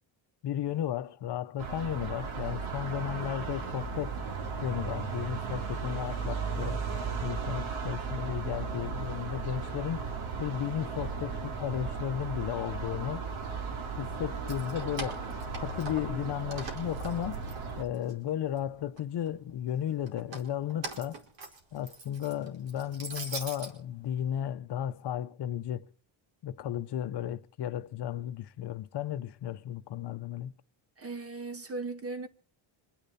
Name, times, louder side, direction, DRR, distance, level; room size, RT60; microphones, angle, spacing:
voice 1, 0.4-4.2 4.6-6.8 7.2-10.1 10.4-13.2 14.0-15.3 15.6-17.4 17.8-21.2 21.7-25.9 26.4-30.5, left 10 dB, 55° left, 0.9 m, -34 dB
sound 1, 1.6-17.8, right 5 dB, 80° right, 3.1 m, -36 dB
Keys jangling, 14.3-16.2 16.5-18.1 18.5-19.3 20.1-23.7, right 3 dB, 60° right, 4.8 m, -42 dB
voice 2, 31.0-32.3, right 3 dB, 30° right, 1.5 m, -38 dB
26.5 x 10.5 x 4.1 m
cardioid pair, 140°, 48 cm